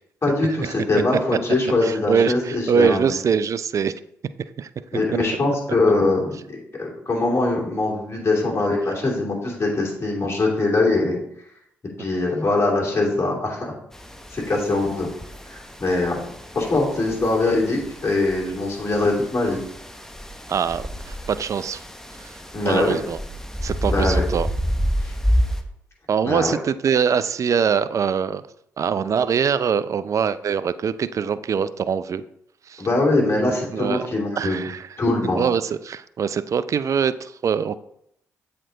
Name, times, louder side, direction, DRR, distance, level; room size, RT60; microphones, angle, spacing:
voice 1, 0.2-3.1 4.9-11.2 12.0-13.8 14.3-15.1 15.5-16.3 16.5-19.6 22.5-23.0 23.9-24.2 25.0-25.1 26.3-26.6 32.8-34.7 35.0-35.5, left 2 dB, 40° left, -2 dB, 2.8 m, -22 dB
voice 2, 1.8-3.9 4.6-4.7 20.5-21.8 22.2-22.3 22.6-23.2 23.6-24.5 26.1-28.4 28.8-32.2 32.7-32.8 33.7-34.0 34.4-34.9 35.4-37.8, right 7 dB, 50° right, 15 dB, 0.4 m, -23 dB
sound 1, 13.9-25.6, equal, 5° left, 0.9 m, -29 dB
7.5 x 4.3 x 3.9 m, 0.73 s
hypercardioid pair, 45°, 7 cm